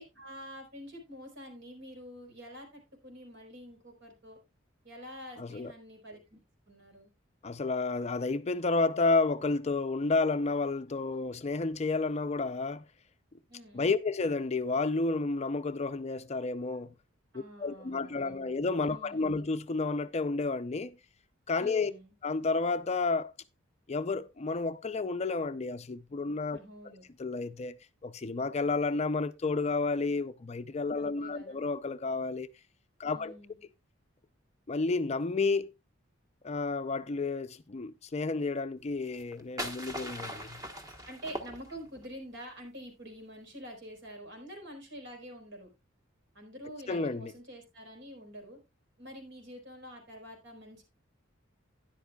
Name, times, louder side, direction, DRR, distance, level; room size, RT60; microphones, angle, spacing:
voice 1, 0.0-4.4 4.8-6.4 6.7-7.1 13.5-14.0 17.3-18.6 18.8-19.4 21.6-22.1 26.5-27.0 30.9-31.6 33.0-33.6 41.1-45.7 46.3-48.6 49.0-50.8, equal, 60° right, 4.4 m, -47 dB
voice 2, 5.4-5.7 7.4-12.8 13.7-16.9 17.6-21.0 21.5-21.9 22.2-23.3 23.9-26.6 27.2-27.8 28.0-32.5 33.0-33.4 34.7-35.7 36.4-40.6 46.9-47.3, left 3 dB, 35° left, 0.5 m, -31 dB
sound 1, 39.1-42.1, equal, 20° right, 1.3 m, -40 dB
12.5 x 10.5 x 2.3 m
head